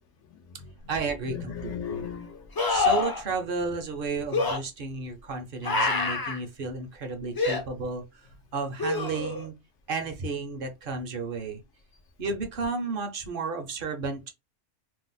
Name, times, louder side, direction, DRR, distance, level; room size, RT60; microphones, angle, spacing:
voice 1, 0.2-0.9 1.3-2.6, left 7 dB, 85° left, 0.9 m, -38 dB
voice 2, 0.9-2.1 2.7-9.5 9.9-11.6 12.2-14.3, right 4 dB, 55° right, 0.7 m, -33 dB
sound 1, 1.0-1.1 2.6-3.2 4.3-4.6 5.6-6.4 7.4-7.6 8.8-9.5 12.6-12.7, left 3 dB, 35° left, 0.3 m, -26 dB
2.6 x 2.0 x 3.8 m
omnidirectional pair, 1.2 m